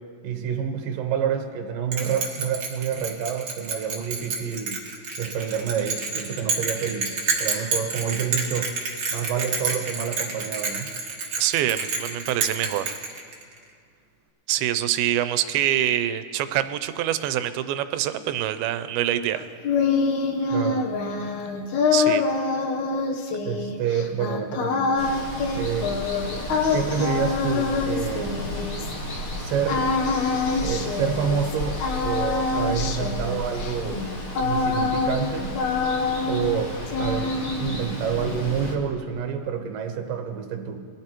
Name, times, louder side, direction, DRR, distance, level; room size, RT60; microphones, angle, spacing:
voice 1, 0.2-4.8 5.2-7.1 7.4-8.7 9.1-10.9 20.5-20.9 23.4-24.9 25.6-25.9 26.7-28.5 29.4-29.9 30.6-34.1 34.4-35.6 36.3-40.8, right 7 dB, 70° right, 4 dB, 2.7 m, -28 dB
Bell, 1.9-13.6, right 4 dB, 45° right, 1.9 m, -29 dB
voice 2, 11.4-13.0 14.5-19.4 21.9-22.2, right 12 dB, 85° right, 11 dB, 2.5 m, -25 dB
sound 1, 19.4-29.2 29.7-31.5 31.8-35.3 35.5-36.6 36.9-37.8, left 4 dB, 70° left, 2.0 m, -25 dB
Water, 25.0-38.7, left 1 dB, 45° left, 1.3 m, -33 dB
22.5 x 14.0 x 3.0 m, 2.1 s
omnidirectional pair, 4.3 m